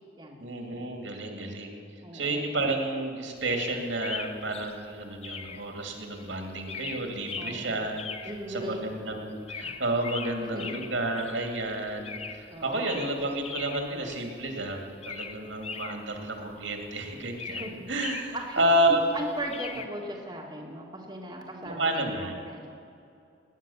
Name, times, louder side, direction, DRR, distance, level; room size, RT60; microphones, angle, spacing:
voice 1, 0.4-1.8 2.1-8.0 8.5-17.6 17.9-19.1 21.6-22.3, right 1 dB, 75° right, 3 dB, 2.5 m, -30 dB
voice 2, 2.0-2.5 7.4-7.9 8.2-8.8 10.5-10.6 12.5-13.1 17.5-17.7 18.3-18.7 19.1-22.7, right 1 dB, 20° right, -2 dB, 1.8 m, -38 dB
sound 1, 3.4-19.9, left 6 dB, 30° left, 0.7 m, -41 dB
19.5 x 9.6 x 7.2 m, 2.6 s
head